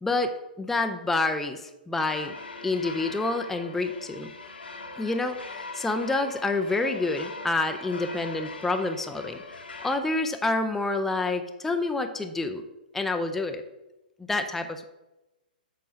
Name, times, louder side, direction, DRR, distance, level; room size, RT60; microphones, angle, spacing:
voice 1, 0.0-2.3 2.6-4.3 5.0-12.6 12.9-13.6 14.2-14.8, left 2 dB, 5° left, 6 dB, 0.4 m, -28 dB
sound 1, 2.0-10.0, left 3 dB, 85° left, 1.3 m, -41 dB
8.2 x 3.3 x 6.5 m, 1.0 s
figure-of-eight pair, 120°, 5 cm